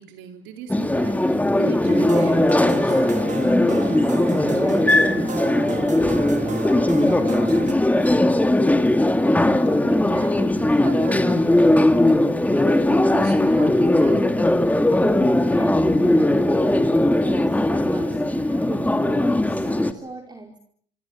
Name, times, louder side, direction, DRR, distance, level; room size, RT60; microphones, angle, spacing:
voice 1, 0.0-3.1 9.5-14.3, right 10 dB, 80° right, 5 dB, 4.5 m, -38 dB
sound 1, 0.7-19.9, left 1 dB, 10° left, 2.4 m, -19 dB
sound 2, 1.8-7.7, right 7 dB, 40° right, 1.3 m, -32 dB
voice 2, 3.6-5.5 5.9-8.6 15.5-20.6, right 3 dB, 20° right, 2 dB, 4.9 m, -37 dB
26.0 x 25.5 x 7.3 m, 0.63 s
supercardioid pair, 75°, 19 cm